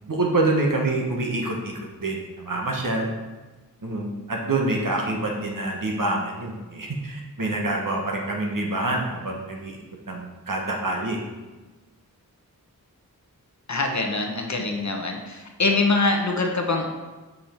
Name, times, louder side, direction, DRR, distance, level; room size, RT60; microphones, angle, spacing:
voice 1, 0.1-3.1 3.8-9.8 10.1-11.2, right 2 dB, 60° right, 0 dB, 1.2 m, -26 dB
voice 2, 13.7-16.9, left 3 dB, 50° left, 2 dB, 1.0 m, -24 dB
5.7 x 5.2 x 4.4 m, 1.2 s
wide cardioid pair, 60°, 37 cm